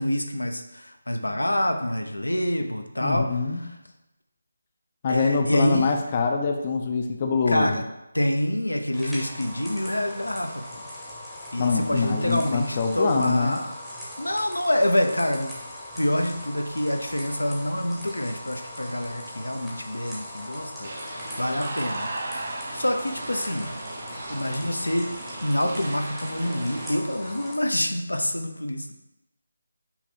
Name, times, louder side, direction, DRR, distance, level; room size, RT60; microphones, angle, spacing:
voice 1, 0.0-3.8 5.1-5.9 7.5-7.8 8.1-10.8 11.5-13.8 14.2-15.5 15.9-23.7 24.3-25.1 25.4-28.9, left 1 dB, 90° left, 5 dB, 0.6 m, -27 dB
voice 2, 3.0-3.6 5.0-7.8 11.6-13.6, left 4 dB, 30° left, 3 dB, 0.5 m, -24 dB
sound 1, 8.9-27.6, left 1 dB, ahead, 0.8 m, -40 dB
sound 2, 20.8-26.9, right 2 dB, 55° right, 0.8 m, -36 dB
5.5 x 2.2 x 4.3 m, 0.92 s
figure-of-eight pair, 155°, 0 cm